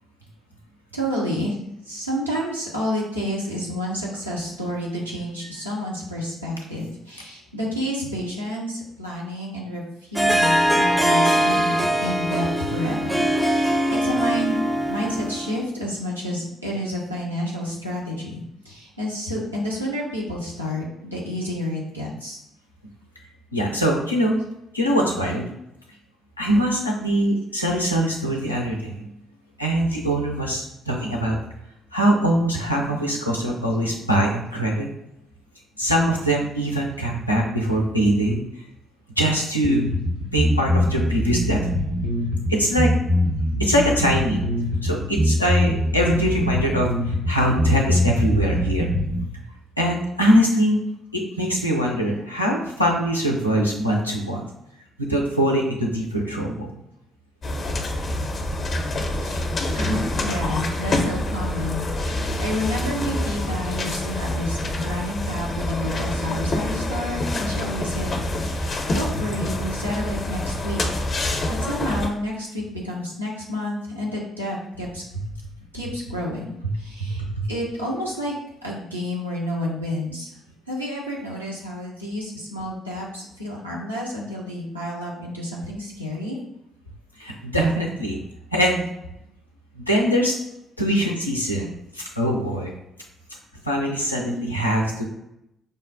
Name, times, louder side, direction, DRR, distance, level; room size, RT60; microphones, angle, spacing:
voice 1, 0.9-1.6 1.9-14.6 14.9-22.4 59.2-59.4 59.7-70.8 71.5-75.0 75.7-77.2 77.5-78.3 78.6-80.3 80.7-86.4 90.9-91.0, left 1 dB, 90° right, -5 dB, 0.6 m, -30 dB
Harp, 10.2-15.6, right 1 dB, 10° right, 0.5 m, -21 dB
voice 2, 23.5-24.4 24.7-25.5 26.4-29.1 29.6-31.4 31.9-34.9 35.8-38.4 39.2-39.8 40.3-41.6 42.5-42.9 43.6-44.4 44.8-48.9 49.8-50.8 51.1-54.4 55.0-56.7 77.0-77.1 77.3-77.4 87.2-88.2 88.5-88.9 89.8-90.3 90.8-91.7 91.9-92.7 93.6-95.1, equal, 90° left, -1 dB, 0.4 m, -22 dB
sound 1, 39.6-49.2, left 1 dB, 70° right, 1.0 m, -23 dB
sound 2, 57.4-72.1, left 1 dB, 40° left, 0.6 m, -26 dB
5.1 x 2.1 x 2.5 m, 0.83 s
figure-of-eight pair, 45°, 0 cm